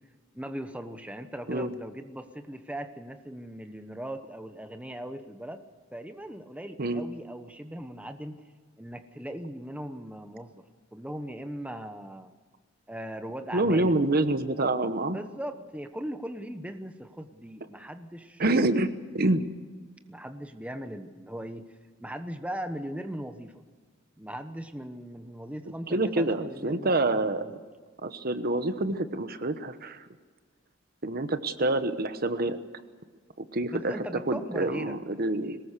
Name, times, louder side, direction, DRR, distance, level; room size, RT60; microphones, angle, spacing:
voice 1, 0.3-5.6 5.9-8.4 8.8-10.6 10.9-12.3 12.9-14.0 15.1-18.6 20.1-21.7 22.0-23.6 24.2-27.6 33.7-35.0, equal, 5° right, 8 dB, 1.0 m, -39 dB
voice 2, 13.5-15.2 18.4-19.4 25.9-27.4 28.0-30.0 31.0-32.6 33.4-34.0 34.3-35.6, right 2 dB, 50° right, 11 dB, 1.1 m, -27 dB
22.5 x 19.5 x 6.8 m, 1.5 s
head